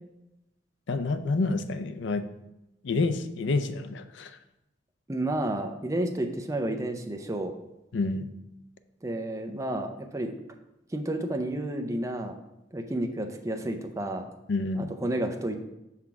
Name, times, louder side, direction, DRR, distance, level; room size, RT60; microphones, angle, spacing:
voice 1, 0.9-2.3 2.8-4.4 7.9-8.3 14.5-14.9, left 3 dB, 75° left, 10 dB, 0.5 m, -28 dB
voice 2, 5.1-7.5 9.0-10.3 10.9-12.4 12.7-14.3 14.7-15.6, right 1 dB, 15° right, 4 dB, 0.5 m, -31 dB
5.8 x 3.6 x 5.8 m, 0.91 s
head